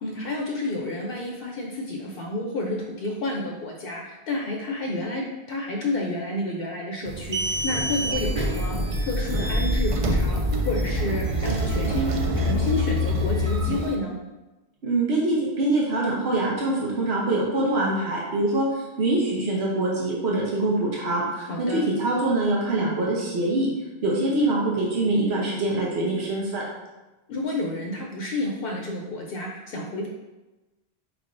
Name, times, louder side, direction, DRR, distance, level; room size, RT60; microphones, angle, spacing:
voice 1, 0.0-14.2 21.4-21.8 27.3-30.1, left 2 dB, 70° left, 0 dB, 0.8 m, -30 dB
sound 1, 7.1-13.9, right 2 dB, 55° right, 0.3 m, -28 dB
sound 2, 8.1-13.7, left 2 dB, 10° left, 0.7 m, -27 dB
voice 2, 14.8-18.7 19.0-23.7 24.0-26.6, right 2 dB, 85° right, -4 dB, 1.1 m, -24 dB
4.8 x 3.4 x 2.5 m, 1.1 s
omnidirectional pair, 1.1 m